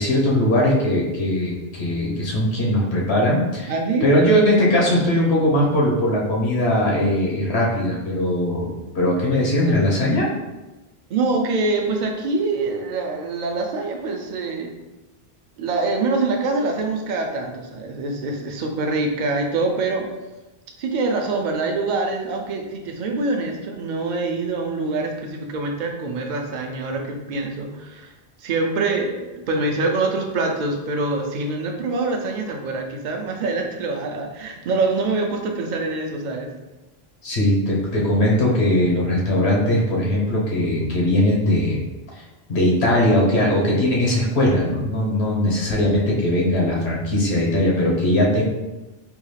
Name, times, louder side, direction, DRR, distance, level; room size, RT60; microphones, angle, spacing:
voice 1, 0.0-3.7 4.0-10.3 37.2-41.8 42.2-42.3 42.5-48.4, left 1 dB, 85° left, -3 dB, 1.1 m, -20 dB
voice 2, 3.7-4.1 11.1-14.7 15.6-20.0 20.8-28.1 28.4-36.5, right 3 dB, 55° right, 2 dB, 0.6 m, -25 dB
3.6 x 2.3 x 3.1 m, 1.1 s
omnidirectional pair, 1.0 m